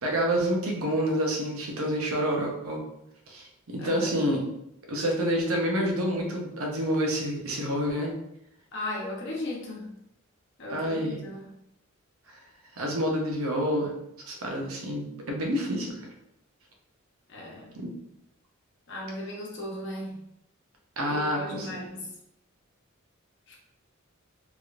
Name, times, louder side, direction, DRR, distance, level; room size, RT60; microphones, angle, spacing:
voice 1, 0.0-2.8 3.3-4.4 4.9-8.1 10.7-11.3 12.8-13.9 14.3-15.9 17.7-17.9 21.0-21.7, equal, 80° right, 0 dB, 0.8 m, -28 dB
voice 2, 3.8-4.1 8.7-9.9 10.6-11.5 17.3-17.8 18.9-20.2 21.1-22.1 23.5-23.6, left 1 dB, 60° left, -2 dB, 0.9 m, -36 dB
3.4 x 2.9 x 2.4 m, 0.82 s
head